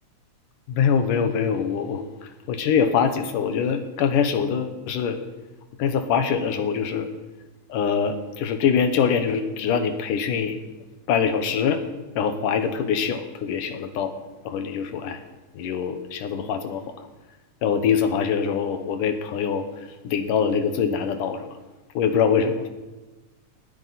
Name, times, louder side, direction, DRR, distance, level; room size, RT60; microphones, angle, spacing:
voice 1, 0.7-2.0 2.5-5.2 5.8-7.1 7.7-10.6 11.1-11.8 12.2-14.1 14.5-15.2 15.6-16.8 17.6-19.7 20.0-21.5 22.0-22.7, left 7 dB, 80° left, 8 dB, 2.7 m, -23 dB
19.5 x 14.5 x 4.2 m, 1.2 s
omnidirectional pair, 3.7 m